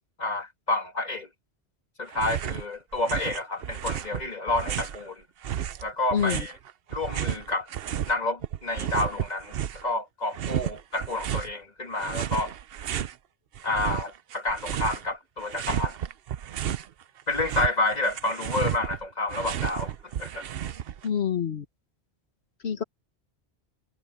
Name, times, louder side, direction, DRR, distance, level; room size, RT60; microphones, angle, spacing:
voice 1, 0.2-1.3 2.0-5.2 5.8-6.5 6.9-7.7 8.1-12.5 13.6-16.0 17.3-19.9 20.2-20.5, left 2 dB, 40° left, 2.5 m, -29 dB
sound 1, 2.1-2.6 2.9-5.0 5.4-8.1 8.4-9.9 10.3-11.5 12.0-13.1 13.5-15.1 15.4-16.9 17.2-21.1, right 10 dB, 65° right, 0.8 m, -32 dB
voice 2, 6.1-6.4 21.0-21.6 22.6-22.8, left 8 dB, 75° left, 1.5 m, -27 dB
omnidirectional pair, 1.1 m